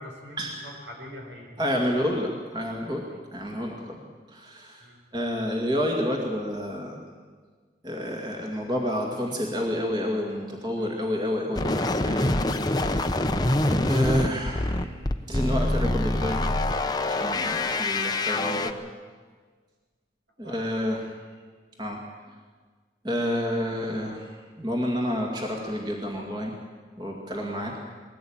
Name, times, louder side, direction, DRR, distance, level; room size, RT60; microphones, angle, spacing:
voice 1, 0.0-1.6 3.1-3.2 4.8-5.0 10.8-10.9 20.4-20.9 27.6-27.9, equal, 90° right, 1 dB, 5.5 m, -44 dB
voice 2, 1.6-4.0 4.3-4.8 5.1-7.0 7.8-12.3 13.7-14.9 15.3-16.5 17.1-18.7 20.4-21.0 21.8-22.0 23.0-24.3 24.6-26.5 27.0-27.8, equal, 25° right, 0 dB, 2.2 m, -29 dB
sound 1, 11.6-18.7, left 2 dB, 25° left, 0.9 m, -25 dB
20.5 x 16.0 x 8.8 m, 1.5 s
head